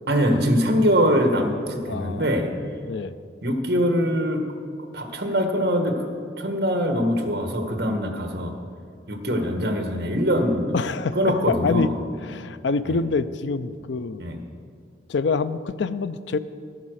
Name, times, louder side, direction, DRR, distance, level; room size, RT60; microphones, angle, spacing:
voice 1, 0.1-2.5 3.4-4.5 4.9-6.1 6.4-8.5 9.1-10.9 11.1-12.0 12.9-13.0 14.2-14.4, equal, 55° right, 5 dB, 1.4 m, -23 dB
voice 2, 1.9-2.3 2.9-3.1 9.3-9.4 10.7-11.2 11.5-11.9 12.2-14.2 15.1-16.4, left 4 dB, 70° left, 14 dB, 0.5 m, -26 dB
11.5 x 9.7 x 6.4 m, 2.1 s
head